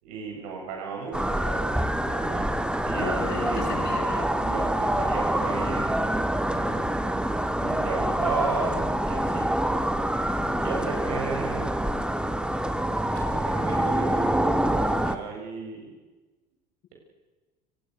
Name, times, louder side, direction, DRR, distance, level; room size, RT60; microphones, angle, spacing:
voice 1, 0.0-2.5 2.8-3.6 4.4-6.2 6.5-7.2 7.5-9.5 10.6-11.8 13.3-15.9, right 5 dB, 75° right, 1 dB, 7.8 m, -35 dB
sound 1, 1.1-15.2, right 1 dB, 5° right, 2.0 m, -26 dB
voice 2, 2.9-4.4, left 6 dB, 55° left, 1 dB, 7.8 m, -34 dB
29.5 x 19.0 x 6.7 m, 1.2 s
hypercardioid pair, 70°, 21 cm